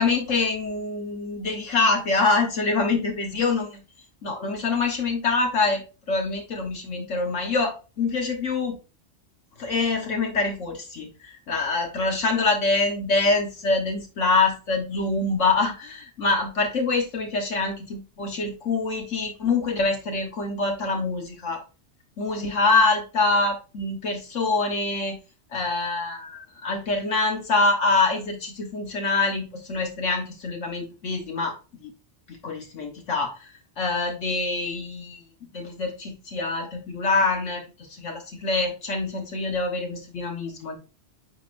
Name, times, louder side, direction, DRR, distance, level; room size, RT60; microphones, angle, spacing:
voice 1, 0.0-3.8 4.2-8.8 9.6-21.6 22.2-25.2 25.5-31.9 32.3-35.2 35.5-40.8, left 3 dB, 80° left, 2 dB, 1.6 m, -25 dB
9.9 x 4.0 x 2.6 m, 0.31 s
omnidirectional pair, 1.3 m